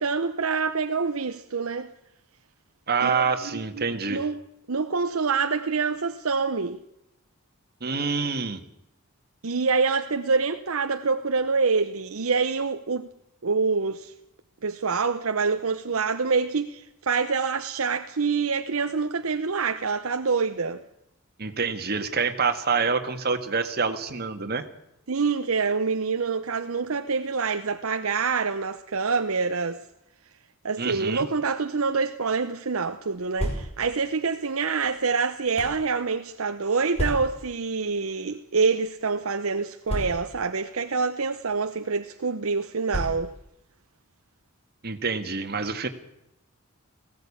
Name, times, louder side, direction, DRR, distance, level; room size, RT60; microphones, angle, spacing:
voice 1, 0.0-1.9 3.0-4.4 4.7-6.8 9.4-13.1 13.4-14.1 14.6-20.8 25.1-29.8 30.6-43.3, right 4 dB, 70° right, 0.8 m, -26 dB
voice 2, 2.9-4.3 7.8-8.6 21.4-24.6 30.8-31.3 44.8-45.9, right 5 dB, 45° right, 1.8 m, -26 dB
sound 1, 33.4-34.0 34.8-35.8 36.9-37.6 38.4-38.6 38.9-39.0 39.9-40.5 41.4-41.6 42.9-43.5, equal, 30° left, 6.1 m, -32 dB
18.5 x 16.5 x 8.6 m
head